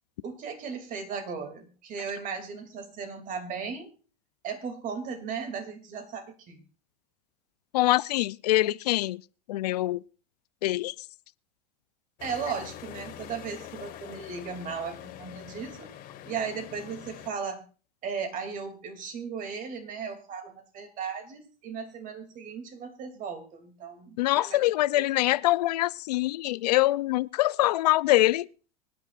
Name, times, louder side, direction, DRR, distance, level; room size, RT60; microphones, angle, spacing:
voice 1, 0.2-3.9 4.4-6.6 12.2-15.9 16.2-17.6 18.0-24.7 24.9-25.0, right 6 dB, 40° right, 2.8 m, -36 dB
voice 2, 7.7-9.2 9.5-10.0 10.6-10.9 24.2-28.5, left 17 dB, 85° left, 0.5 m, -24 dB
sound 1, 12.2-17.3, left 11 dB, 45° left, 1.8 m, -44 dB
25.0 x 9.4 x 2.5 m
supercardioid pair, 110°, 20 cm